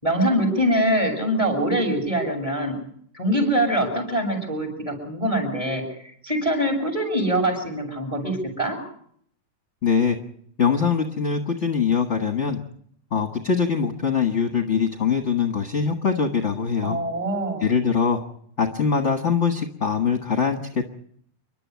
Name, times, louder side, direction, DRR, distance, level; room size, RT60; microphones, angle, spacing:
voice 1, 0.0-2.7 3.1-8.8 16.8-17.7, right 1 dB, 15° right, 6 dB, 7.4 m, -24 dB
voice 2, 9.8-10.2 10.6-12.6 13.1-17.0 17.6-18.2 18.6-20.9, left 6 dB, 35° left, 5 dB, 1.7 m, -22 dB
29.5 x 12.0 x 9.5 m, 0.66 s
omnidirectional pair, 2.4 m